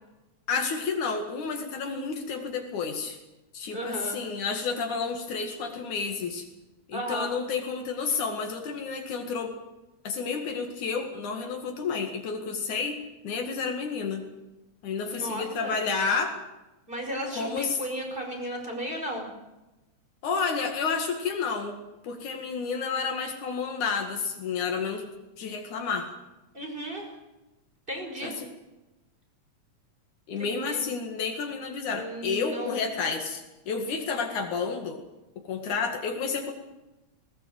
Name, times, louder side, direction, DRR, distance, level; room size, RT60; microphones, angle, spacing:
voice 1, 0.5-3.2 3.5-6.5 6.9-9.6 10.0-14.2 14.8-16.3 17.3-17.8 20.2-21.8 22.0-25.0 25.4-26.1 28.2-28.5 30.3-35.0 35.5-36.5, left 5 dB, 80° left, 4 dB, 3.5 m, -30 dB
voice 2, 3.7-4.2 6.9-7.3 15.1-15.8 16.9-19.3 26.5-27.1 27.9-28.4 30.4-30.8 31.9-32.8, right 1 dB, 15° right, 3 dB, 5.3 m, -34 dB
19.5 x 19.5 x 8.0 m, 1.0 s
omnidirectional pair, 3.4 m